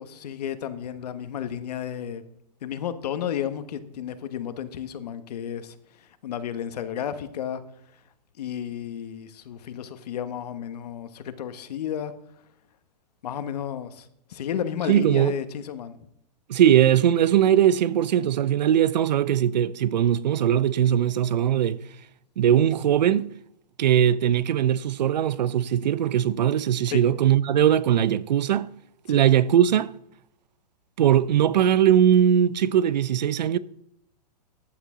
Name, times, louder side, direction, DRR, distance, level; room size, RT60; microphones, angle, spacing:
voice 1, 0.0-2.2 2.6-7.6 8.4-12.1 13.2-16.0 26.9-27.0 29.1-29.2, left 9 dB, 70° left, 1.3 m, -32 dB
voice 2, 14.9-15.3 16.5-21.8 22.4-23.3 23.8-28.7 29.1-29.9 31.0-33.6, right 10 dB, 85° right, 0.7 m, -20 dB
14.5 x 9.4 x 3.8 m
hypercardioid pair, 150°, 21 cm